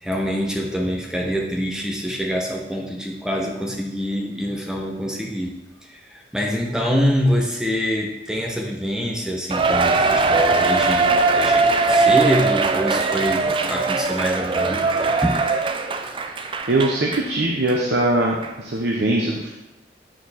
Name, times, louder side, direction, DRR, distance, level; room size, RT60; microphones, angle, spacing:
voice 1, 0.0-5.5 5.8-15.4, equal, 5° right, 0 dB, 0.9 m, -25 dB
Cheering, 9.5-17.3 17.7-17.8 18.4-18.5, right 3 dB, 30° right, 0.4 m, -20 dB
voice 2, 16.7-19.6, right 2 dB, 75° right, -1 dB, 0.8 m, -21 dB
8.9 x 4.6 x 4.2 m, 1.0 s
head